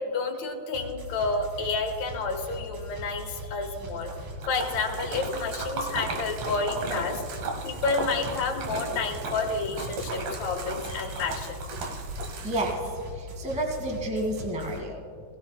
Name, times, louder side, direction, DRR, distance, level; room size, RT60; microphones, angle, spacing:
voice 1, 0.0-4.1 4.5-7.2 7.6-11.6, left 4 dB, 70° left, 3 dB, 2.5 m, -30 dB
sound 1, 0.7-14.8, equal, 90° right, 3.2 m, -40 dB
Splash splatter, 3.9-13.0, right 3 dB, 65° right, 2.4 m, -36 dB
voice 2, 12.4-12.8 13.1-15.0, right 1 dB, 5° right, 0 dB, 1.1 m, -30 dB
19.0 x 17.0 x 2.2 m, 2.2 s
omnidirectional pair, 3.4 m